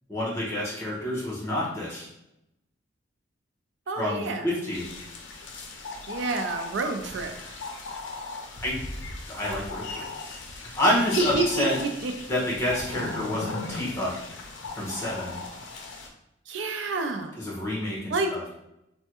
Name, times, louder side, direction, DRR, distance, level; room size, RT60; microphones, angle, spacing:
voice 1, 0.1-2.1 4.0-4.9 8.6-8.8 9.3-10.1 10.7-11.7 12.3-14.2 14.7-15.4 17.4-18.4, left 1 dB, 15° left, -6 dB, 0.9 m, -28 dB
voice 2, 3.9-4.5 6.1-7.6 10.0-10.1 11.2-12.1 16.5-17.4 18.1-18.3, right 3 dB, 75° right, 6 dB, 0.4 m, -29 dB
sound 1, 4.7-16.1, left 3 dB, 80° left, 0.5 m, -37 dB
3.3 x 2.1 x 2.9 m, 0.85 s
head